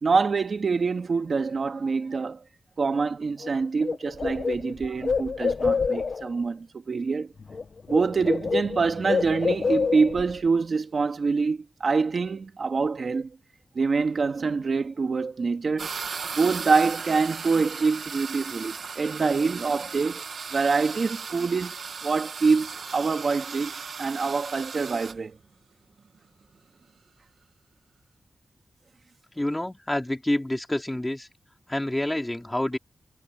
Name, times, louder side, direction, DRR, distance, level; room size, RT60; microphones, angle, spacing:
voice 1, 0.0-2.4 2.8-7.3 7.9-13.3 13.7-15.9 16.4-20.2 20.5-21.8 22.0-23.7 24.0-25.3, right 4 dB, 50° right, 2.2 m, -25 dB
Bird, 3.4-3.5 3.8-6.3 7.4-7.6 7.9-10.3, left 5 dB, 50° left, 0.9 m, -27 dB
sound 1, 15.8-25.2, right 5 dB, 70° right, 1.3 m, -37 dB
voice 2, 29.4-31.3 31.7-32.8, left 1 dB, 10° left, 3.4 m, -28 dB
wide cardioid pair, 135°, 0 cm